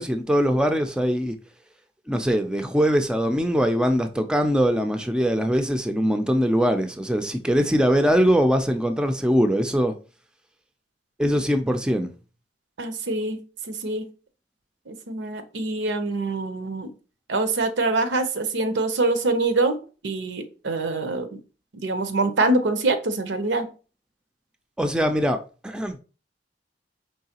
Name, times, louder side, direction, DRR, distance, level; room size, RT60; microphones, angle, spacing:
voice 1, 0.0-1.3 2.1-9.9 11.2-12.1 24.8-25.4 25.6-26.0, equal, 5° right, 0.3 m, -22 dB
voice 2, 12.8-14.1 14.9-16.9 17.3-19.8 20.0-21.3 21.7-23.7, right 2 dB, 85° right, 0.7 m, -25 dB
4.6 x 3.2 x 2.8 m
head